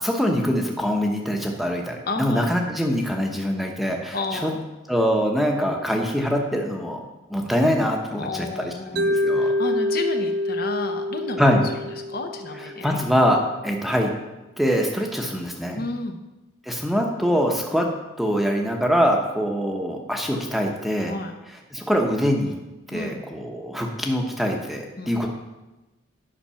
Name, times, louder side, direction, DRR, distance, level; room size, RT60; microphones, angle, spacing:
voice 1, 0.0-4.5 4.9-7.0 7.3-9.5 11.4-11.6 12.8-14.1 14.6-15.8 16.7-17.9 18.2-21.1 21.7-22.6 22.9-25.3, equal, ahead, 1 dB, 0.9 m, -23 dB
voice 2, 2.1-2.4 4.1-4.6 8.2-9.0 9.3-11.4 11.7-11.8 12.1-12.9 15.7-16.2 21.1-21.3 22.9-23.2 25.0-25.1, left 3 dB, 45° left, 5 dB, 0.8 m, -31 dB
Mallet percussion, 9.0-13.1, left 1 dB, 50° right, 0.4 m, -26 dB
10.0 x 5.9 x 5.7 m, 1.1 s
head